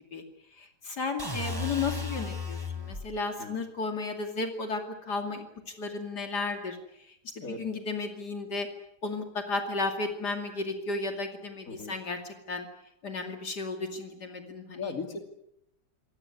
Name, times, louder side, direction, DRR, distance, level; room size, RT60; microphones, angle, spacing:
voice 1, 0.6-5.5 5.8-6.8 7.4-8.7 9.0-12.7 13.0-14.9, left 3 dB, 70° left, 5 dB, 3.1 m, -34 dB
sound 1, 1.2-3.1, left 3 dB, 10° right, 3.6 m, -34 dB
voice 2, 14.8-15.2, left 4 dB, 50° left, 6 dB, 3.1 m, -37 dB
25.5 x 18.0 x 9.8 m, 0.79 s
omnidirectional pair, 1.8 m